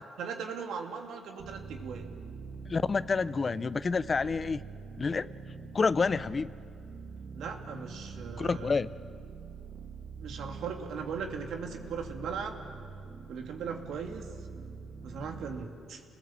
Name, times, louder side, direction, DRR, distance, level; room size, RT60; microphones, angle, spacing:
voice 1, 0.2-2.1 7.3-8.8 10.2-12.6 13.3-14.7 15.0-16.0, right 6 dB, 75° right, 3 dB, 2.6 m, -38 dB
sound 1, 1.4-15.7, right 5 dB, 60° right, 1.9 m, -45 dB
voice 2, 2.7-4.6 5.0-5.3 5.7-6.5 8.4-8.9, left 4 dB, 35° left, 16 dB, 0.6 m, -28 dB
29.5 x 20.5 x 7.4 m, 2.5 s
cardioid pair, 90°, 0 cm